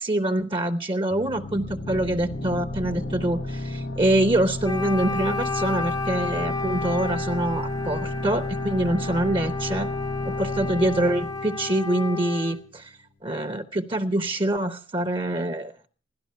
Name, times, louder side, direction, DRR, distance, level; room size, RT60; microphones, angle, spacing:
voice 1, 0.0-9.9 10.2-15.7, right 1 dB, 25° right, 8 dB, 0.7 m, -25 dB
sound 1, 1.1-12.5, left 1 dB, 65° left, 1.3 m, -33 dB
Wind instrument woodwind instrument, 4.6-12.6, left 3 dB, 20° left, 0.7 m, -32 dB
16.5 x 12.5 x 6.6 m, 0.41 s
head